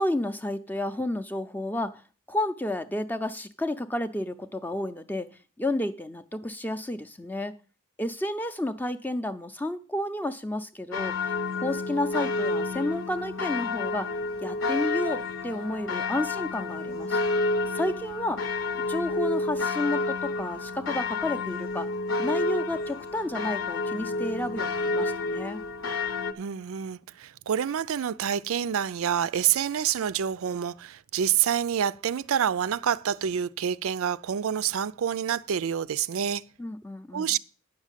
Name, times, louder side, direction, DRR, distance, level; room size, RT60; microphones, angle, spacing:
voice 1, 0.0-2.0 2.3-7.5 8.0-11.3 11.6-14.1 14.4-17.2 17.7-18.4 18.8-21.9 22.2-25.6 36.6-37.3, left 1 dB, 10° left, 0.5 m, -31 dB
sound 1, 10.9-26.3, left 3 dB, 65° left, 0.9 m, -30 dB
voice 2, 26.4-36.4 37.1-37.4, right 8 dB, 80° right, 0.4 m, -27 dB
9.8 x 6.2 x 7.3 m
head